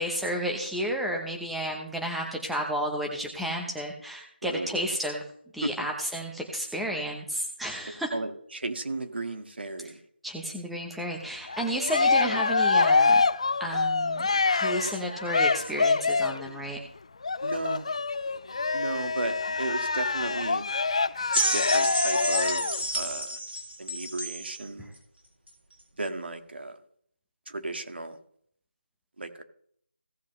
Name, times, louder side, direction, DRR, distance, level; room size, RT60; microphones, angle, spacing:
voice 1, 0.0-5.2 5.5-8.1 10.2-13.2 13.6-16.8, equal, ahead, 0 dB, 0.9 m, -32 dB
voice 2, 7.9-10.0 17.4-17.9 18.7-20.6 21.3-23.4 23.8-24.9 26.0-26.8 27.5-28.2 29.2-29.4, right 2 dB, 70° right, 7 dB, 2.0 m, -34 dB
Cheering, 11.5-16.5 17.2-22.8, left 4 dB, 35° left, 0.4 m, -25 dB
sound 1, 21.3-24.6 25.5-25.6, right 1 dB, 90° right, 3.7 m, -30 dB
17.0 x 7.3 x 3.2 m, 0.64 s
figure-of-eight pair, 175°, 6 cm